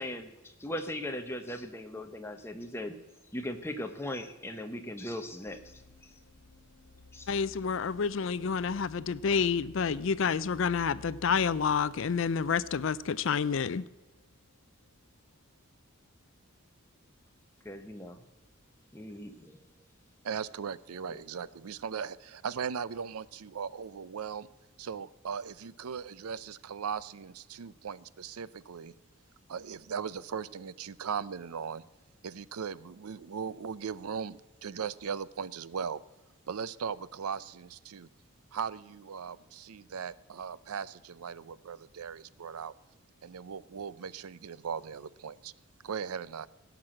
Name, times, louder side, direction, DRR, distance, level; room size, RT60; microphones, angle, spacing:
voice 1, 0.0-2.9 3.3-6.1 7.1-7.3 17.6-18.2 18.9-19.6, left 1 dB, 10° left, 0.9 m, -39 dB
sound 1, 5.4-15.2, left 3 dB, 80° left, 1.6 m, -55 dB
voice 2, 7.3-13.8, left 6 dB, 60° left, 0.4 m, -29 dB
voice 3, 20.2-24.5 24.8-28.9 29.5-31.8 32.2-36.0 36.5-38.1 38.5-42.7 43.2-45.5 45.8-46.5, right 6 dB, 85° right, 0.5 m, -38 dB
16.5 x 6.1 x 7.5 m
head